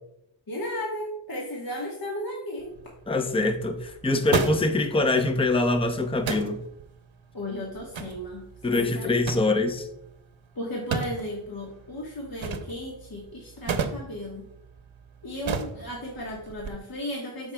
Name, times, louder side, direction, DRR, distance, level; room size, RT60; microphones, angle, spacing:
voice 1, 0.5-2.7 7.3-8.4 8.7-9.1 10.5-14.4 15.2-17.5, left 1 dB, 45° left, -3 dB, 1.3 m, -35 dB
sound 1, 2.6-16.7, right 5 dB, 75° right, 0.8 m, -36 dB
voice 2, 3.1-6.6 8.6-9.9, left 2 dB, 10° left, 7 dB, 0.6 m, -24 dB
13.0 x 4.9 x 2.2 m, 0.79 s
wide cardioid pair, 90°, 47 cm